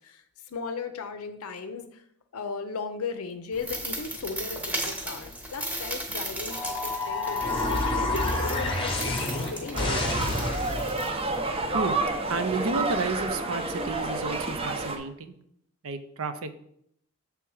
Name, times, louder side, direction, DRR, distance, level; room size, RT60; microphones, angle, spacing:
voice 1, 0.0-2.0 2.3-10.6, left 5 dB, 80° left, 8 dB, 0.5 m, -37 dB
sound 1, 3.5-11.6, right 1 dB, 5° right, 0.9 m, -37 dB
sound 2, 6.5-11.1, left 2 dB, 25° left, 0.8 m, -29 dB
sound 3, 9.7-15.0, right 2 dB, 25° right, 0.6 m, -29 dB
voice 2, 12.3-15.3 15.8-16.5, right 3 dB, 75° right, 9 dB, 0.6 m, -31 dB
7.1 x 3.4 x 4.7 m, 0.71 s
head